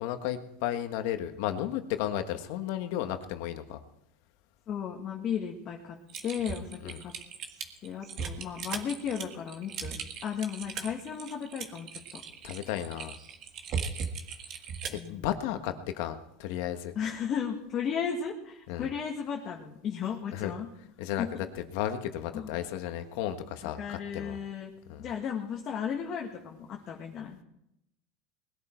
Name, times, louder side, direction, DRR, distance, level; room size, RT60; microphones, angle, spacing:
voice 1, 0.0-3.8 6.8-7.0 12.4-13.2 14.9-16.9 18.7-18.9 20.3-20.5 21.0-24.4 24.9-25.1, left 11 dB, 65° left, 8 dB, 1.5 m, -34 dB
voice 2, 4.7-6.0 6.2-7.1 7.8-12.2 14.9-15.3 17.0-20.7 21.2-21.3 22.3-22.6 23.8-24.7 25.0-27.4, left 7 dB, 35° left, 0 dB, 1.7 m, -35 dB
Typing, 6.1-15.1, right 6 dB, 45° right, 1.7 m, -38 dB
20.5 x 11.5 x 4.5 m, 0.81 s
supercardioid pair, 135°, 0 cm